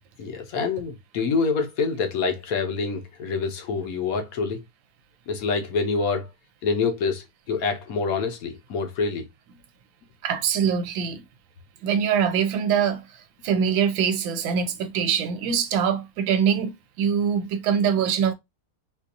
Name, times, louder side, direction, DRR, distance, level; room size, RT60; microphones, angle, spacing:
voice 1, 0.2-4.6 5.3-6.3 6.6-9.2, left 4 dB, 65° left, 0.9 m, -26 dB
voice 2, 10.2-11.2 11.8-13.0 13.4-16.7 17.0-18.3, right 7 dB, 85° right, 1.4 m, -23 dB
4.2 x 2.4 x 2.5 m
omnidirectional pair, 2.1 m